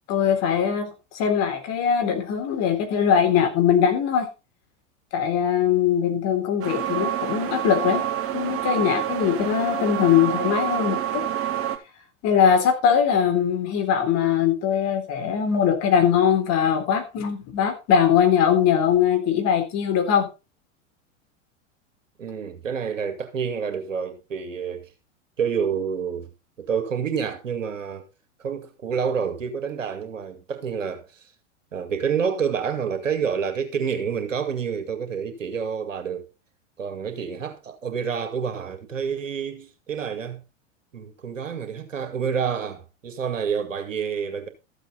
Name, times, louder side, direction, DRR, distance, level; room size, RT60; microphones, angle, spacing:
voice 1, 0.1-4.3 5.1-8.0 8.3-11.2 12.2-20.3, left 8 dB, 40° left, 3.4 m, -21 dB
sound 1, 6.6-11.8, right 11 dB, 35° right, 2.0 m, -28 dB
voice 2, 22.2-24.9 25.4-26.3 26.6-28.1 28.4-31.2 31.7-36.3 36.8-40.4 40.9-44.5, right 7 dB, 80° right, 2.4 m, -28 dB
13.5 x 8.0 x 4.0 m
figure-of-eight pair, 90°, 38 cm